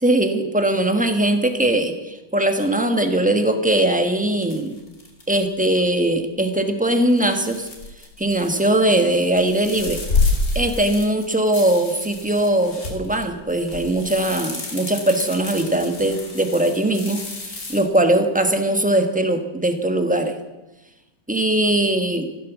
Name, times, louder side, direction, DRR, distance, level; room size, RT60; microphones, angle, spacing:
voice 1, 0.0-4.7 5.3-7.7 8.2-10.0 10.5-20.4 21.3-22.3, right 1 dB, 5° right, 6 dB, 1.0 m, -20 dB
sound 1, 4.4-5.5 7.1-8.8 9.1-17.8, left 3 dB, 45° left, 3.2 m, -29 dB
15.0 x 12.0 x 7.3 m, 1.0 s
omnidirectional pair, 2.2 m